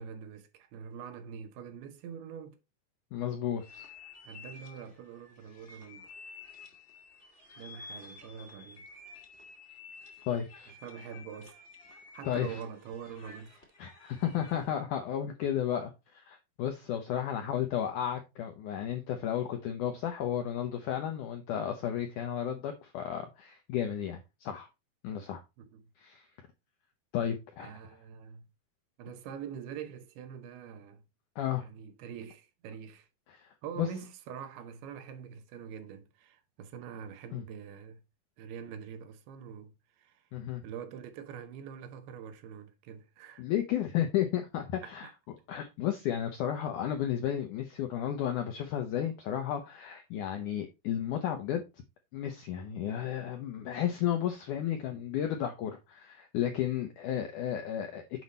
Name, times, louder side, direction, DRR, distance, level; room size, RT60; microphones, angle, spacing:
voice 1, 0.0-2.6 4.2-6.1 7.6-8.9 10.7-11.6 12.1-13.6 25.6-25.9 27.6-28.5 29.0-31.0 31.6-33.1 33.6-38.0 38.4-40.3 40.6-43.5 44.8-45.1 54.9-55.0, right 7 dB, 80° right, 2.9 m, -44 dB
voice 2, 3.1-3.9 10.3-10.7 12.2-12.5 13.8-24.7 25.0-25.4 26.0-26.3 27.1-27.7 31.4-31.7 33.3-33.5 33.8-33.9 37.3-37.4 40.3-40.6 43.4-45.1 45.5-51.6 52.1-58.2, left 10 dB, 80° left, 1.8 m, -33 dB
sound 1, 3.6-14.8, left 4 dB, 40° left, 0.9 m, -52 dB
7.8 x 5.4 x 4.1 m
omnidirectional pair, 4.7 m